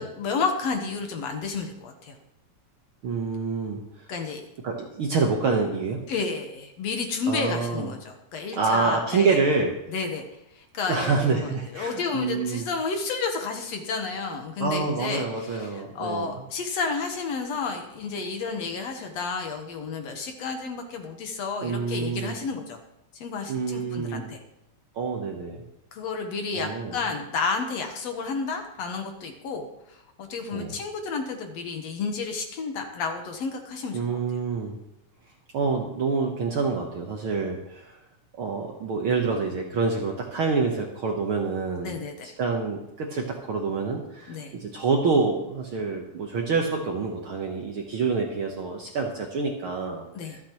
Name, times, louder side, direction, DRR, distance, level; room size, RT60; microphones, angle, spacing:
voice 1, 0.0-2.2 4.1-4.4 6.1-9.4 9.9-10.2 10.6-22.8 23.1-24.4 25.9-34.0 41.8-42.3 44.3-44.5 50.1-50.4, left 4 dB, 65° left, 4 dB, 2.1 m, -31 dB
voice 2, 3.0-4.1 4.6-6.0 7.3-7.9 8.5-9.7 10.9-12.7 14.6-16.4 21.6-22.4 23.5-24.3 24.9-25.6 26.5-27.0 30.5-30.7 33.9-34.8 35.5-38.0 38.4-42.0 42.2-50.4, right 4 dB, 60° right, 1 dB, 1.5 m, -27 dB
25.0 x 8.5 x 3.0 m, 0.84 s
omnidirectional pair, 3.5 m